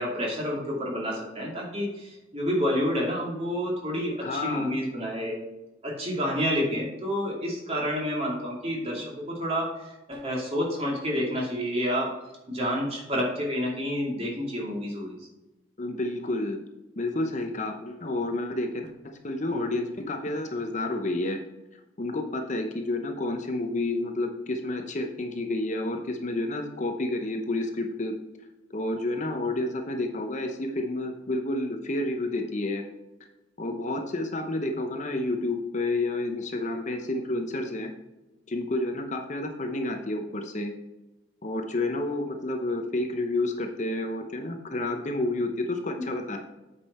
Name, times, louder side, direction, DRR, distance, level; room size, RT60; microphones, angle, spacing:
voice 1, 0.0-5.4 5.8-12.1 12.5-15.2 45.9-46.0, equal, 30° right, -2 dB, 2.6 m, -29 dB
voice 2, 4.2-4.7 15.8-16.6 17.0-21.4 22.0-28.1 28.7-32.8 33.6-37.9 38.5-40.7 41.4-46.4, left 2 dB, 40° left, 5 dB, 0.7 m, -30 dB
8.4 x 5.4 x 4.3 m, 1.0 s
head